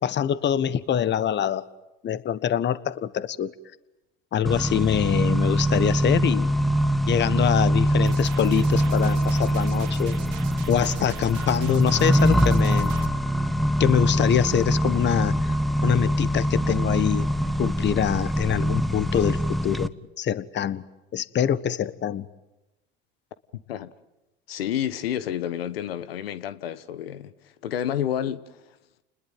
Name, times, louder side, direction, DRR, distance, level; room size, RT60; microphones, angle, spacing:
voice 1, 0.0-1.6 2.0-3.5 4.3-6.5 7.1-10.2 10.7-12.9 13.8-15.5 15.8-17.3 17.6-19.9 20.2-20.8 21.1-22.3, left 9 dB, 40° left, 1.5 m, -24 dB
Accelerating revving vroom, 4.5-19.9, equal, ahead, 1.1 m, -23 dB
sound 1, 8.1-13.1, right 13 dB, 75° right, 1.8 m, -41 dB
voice 2, 24.5-28.6, left 10 dB, 90° left, 1.2 m, -30 dB
30.0 x 21.0 x 9.3 m
hypercardioid pair, 90°, 29 cm